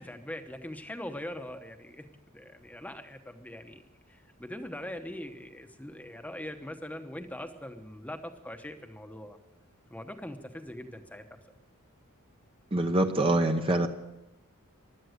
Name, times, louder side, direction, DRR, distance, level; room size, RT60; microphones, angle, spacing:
voice 1, 0.0-2.1 2.3-9.4 9.9-11.4, left 1 dB, 5° left, 6 dB, 1.0 m, -42 dB
voice 2, 12.7-13.9, right 1 dB, 25° right, 6 dB, 0.8 m, -25 dB
16.0 x 12.0 x 6.6 m, 0.94 s
head